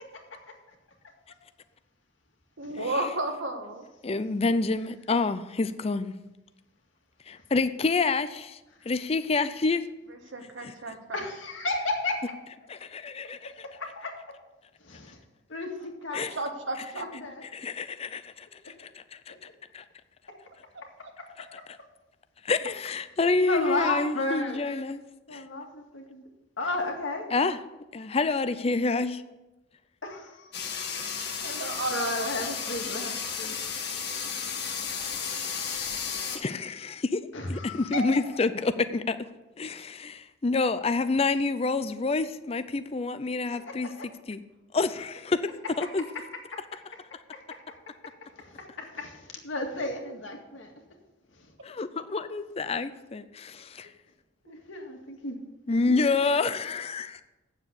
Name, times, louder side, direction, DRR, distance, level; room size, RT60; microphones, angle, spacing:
voice 1, 2.6-3.9 10.1-11.2 16.1-17.1 31.4-32.5 54.5-54.6, right 2 dB, 80° right, 1.5 m, -33 dB
voice 2, 4.0-6.1 7.3-8.6 8.8-9.9 10.6-10.7 12.7-13.5 16.1-16.3 17.5-19.8 21.4-21.5 22.4-25.0 25.3-25.4 27.3-27.6 27.9-29.2 33.8-33.9 36.3-37.2 37.5-39.2 39.6-43.9 44.3-44.4 44.7-45.5 45.8-46.1 51.6-53.9 55.7-57.2, left 3 dB, 30° left, 0.5 m, -28 dB
voice 3, 11.1-12.4 13.4-14.4 14.8-15.2 15.5-16.3 16.9-17.4 18.6-18.7 20.3-20.4 21.2-21.6 23.5-24.7 25.3-26.2 26.6-27.3 30.0-30.5 31.9-33.6 37.3-38.2 43.5-44.1 45.8-45.9 46.1-46.2 46.5-46.6 46.9-47.0 47.3-50.7 51.3-51.5 54.4-55.4 55.7-56.1, left 2 dB, 80° left, 2.0 m, -34 dB
sound 1, 30.5-36.4, left 6 dB, 55° left, 1.6 m, -33 dB
8.7 x 7.3 x 8.1 m
head